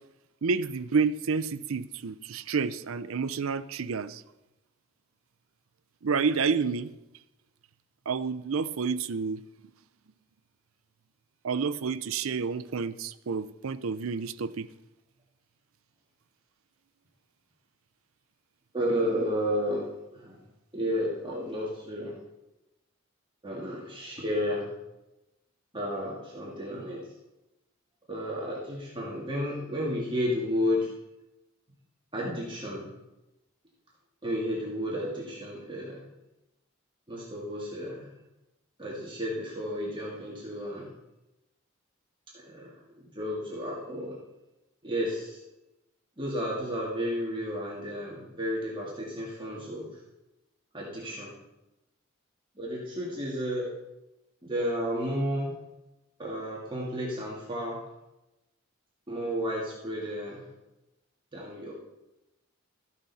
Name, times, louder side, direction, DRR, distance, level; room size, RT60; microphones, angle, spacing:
voice 1, 0.4-4.2 6.0-6.9 8.1-9.4 11.4-14.7, right 5 dB, 80° right, 14 dB, 0.5 m, -29 dB
voice 2, 18.7-19.9 20.1-20.4 20.7-22.2 23.4-24.7 25.7-27.0 28.1-30.9 32.1-32.9 34.2-36.0 37.1-38.1 38.8-40.9 42.4-44.2 44.8-45.4 46.2-50.0 50.7-51.3 52.6-53.7 54.4-55.5 56.2-57.8 59.1-60.4 61.3-61.7, equal, 25° right, -4 dB, 2.1 m, -32 dB
14.0 x 11.0 x 4.2 m, 0.96 s
head